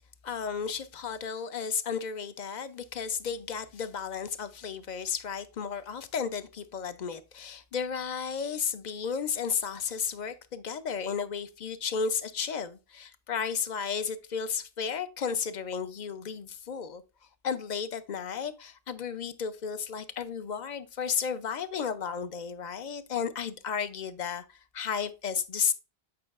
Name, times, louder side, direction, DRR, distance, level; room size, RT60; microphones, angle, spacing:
voice 1, 0.2-17.0 17.4-25.7, left 6 dB, 50° left, 0.7 m, -33 dB
8.5 x 5.4 x 2.4 m
omnidirectional pair, 1.0 m